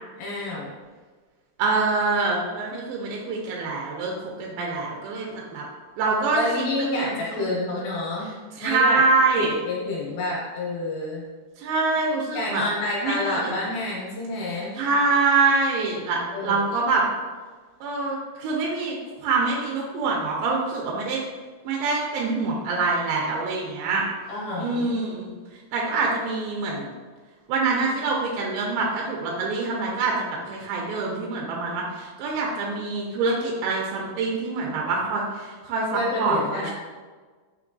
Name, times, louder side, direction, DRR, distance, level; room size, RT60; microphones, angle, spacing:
voice 1, 0.2-0.7 6.3-8.3 8.6-9.0 9.4-11.2 12.3-14.8 16.3-16.6 24.3-24.9 35.9-36.7, left 2 dB, 75° left, -5 dB, 2.5 m, -28 dB
voice 2, 1.6-5.6 6.0-6.4 7.0-7.5 8.6-9.6 11.6-12.6 13.0-13.5 14.8-17.1 17.8-21.2 21.7-24.0 24.6-25.3 25.7-26.9 27.5-36.7, right 3 dB, 85° right, -2 dB, 2.1 m, -25 dB
6.0 x 3.0 x 2.6 m, 1.4 s
omnidirectional pair, 4.8 m